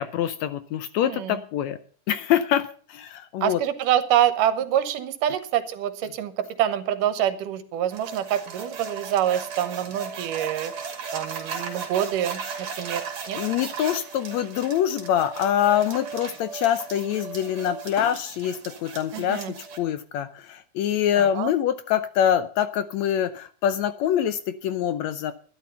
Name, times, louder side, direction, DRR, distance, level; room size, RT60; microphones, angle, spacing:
voice 1, 0.0-1.8 2.1-3.6 11.6-11.8 13.4-19.5 19.8-25.3, left 10 dB, 75° left, 12 dB, 1.7 m, -25 dB
voice 2, 1.0-1.4 3.4-10.7 11.1-13.4 19.1-19.5 21.2-21.5, right 11 dB, 85° right, 12 dB, 2.7 m, -26 dB
sound 1, 7.9-19.8, right 6 dB, 60° right, 3.5 m, -36 dB
12.0 x 11.0 x 5.6 m, 0.42 s
omnidirectional pair, 3.7 m